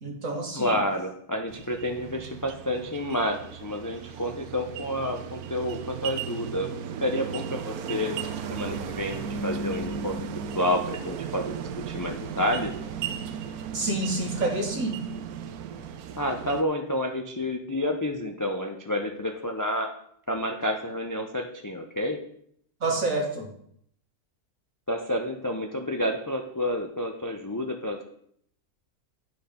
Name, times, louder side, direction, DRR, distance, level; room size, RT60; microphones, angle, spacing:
voice 1, 0.0-0.7 13.7-15.1 22.8-23.5, right 2 dB, 60° right, 0 dB, 2.1 m, -28 dB
voice 2, 0.6-6.7 7.0-8.1 8.5-10.3 10.5-11.5 11.8-12.7 16.2-19.9 20.3-22.2 24.9-28.0, left 1 dB, 30° left, 3 dB, 0.3 m, -29 dB
sound 1, 1.5-16.6, right 7 dB, 75° right, 1.1 m, -36 dB
10.0 x 5.1 x 5.2 m, 0.68 s
omnidirectional pair, 1.6 m